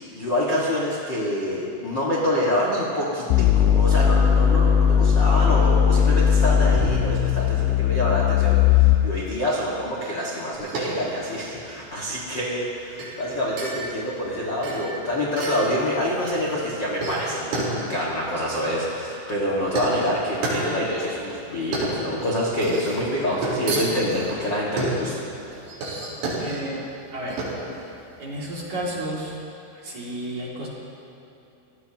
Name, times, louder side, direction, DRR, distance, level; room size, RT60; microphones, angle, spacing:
voice 1, 0.1-25.2, equal, 70° left, -5 dB, 1.0 m, -26 dB
sound 1, 3.3-9.3, left 8 dB, 85° left, 3.0 m, -18 dB
sound 2, 10.5-29.3, right 2 dB, 75° right, 6.2 m, -32 dB
voice 2, 26.4-26.8 27.1-27.4 28.2-29.4 29.7-30.7, right 1 dB, 45° right, -5 dB, 3.4 m, -32 dB
28.0 x 17.5 x 3.0 m, 2.7 s
omnidirectional pair, 5.5 m